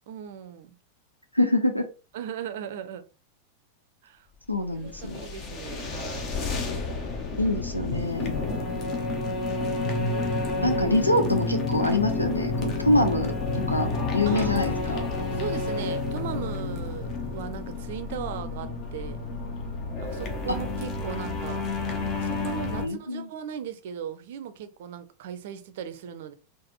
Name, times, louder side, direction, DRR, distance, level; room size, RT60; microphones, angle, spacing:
voice 1, 0.1-0.8 2.1-3.0 4.0-4.3 4.7-6.3 8.5-9.2 14.3-15.0 15.3-19.2 20.0-21.6 22.1-26.3, right 8 dB, 55° right, 0.5 m, -38 dB
voice 2, 1.3-1.9 4.5-5.2 7.4-8.3 10.6-13.3 13.7-13.9 14.1-15.0 20.5-20.6 22.8-23.3, left 1 dB, 85° left, 0.5 m, -25 dB
sound 1, 4.5-22.9, left 3 dB, 35° left, 0.8 m, -30 dB
3.9 x 2.5 x 2.9 m
figure-of-eight pair, 90°, 0 cm